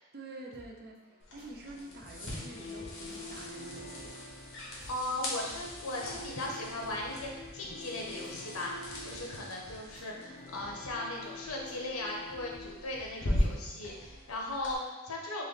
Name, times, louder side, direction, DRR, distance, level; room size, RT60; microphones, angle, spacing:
voice 1, 0.1-4.2, right 2 dB, 50° right, 1 dB, 0.6 m, -48 dB
sound 1, 0.5-14.2, equal, 30° right, 0.9 m, -57 dB
sound 2, 1.2-14.7, left 1 dB, 60° left, 1.2 m, -40 dB
sound 3, 2.3-12.8, left 2 dB, 30° left, 0.3 m, -48 dB
voice 2, 4.9-15.4, left 1 dB, 80° left, -1 dB, 0.8 m, -38 dB
3.2 x 3.0 x 4.0 m, 1.1 s
head